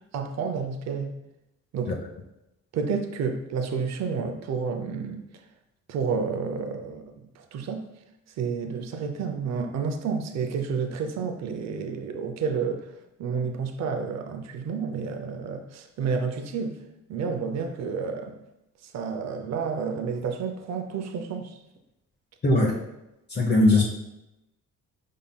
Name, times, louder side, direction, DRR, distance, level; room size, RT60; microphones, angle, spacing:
voice 1, 0.1-1.1 1.7-1.9 2.7-5.2 5.9-7.8 8.4-12.9 13.2-16.8 17.1-18.4 18.8-21.6, right 5 dB, 60° right, 0.6 m, -30 dB
voice 2, 23.3-23.8, left 2 dB, 35° left, 0.8 m, -19 dB
5.4 x 3.7 x 2.3 m
cardioid pair, 90°, 30 cm